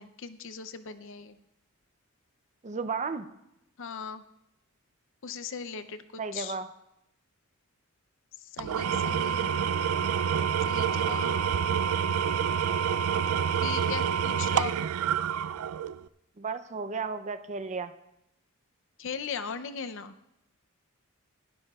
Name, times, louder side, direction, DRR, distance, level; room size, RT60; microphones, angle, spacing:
voice 1, 0.0-1.4 3.8-4.2 5.2-6.6 8.4-9.7 10.6-11.5 13.5-14.8 19.0-20.1, left 6 dB, 60° left, 10 dB, 0.6 m, -38 dB
voice 2, 2.6-3.3 6.2-6.7 16.4-17.9, right 4 dB, 30° right, 11 dB, 0.5 m, -33 dB
Engine / Tools, 8.6-16.0, right 7 dB, 85° right, 0.4 m, -27 dB
19.5 x 12.5 x 2.4 m, 0.85 s
head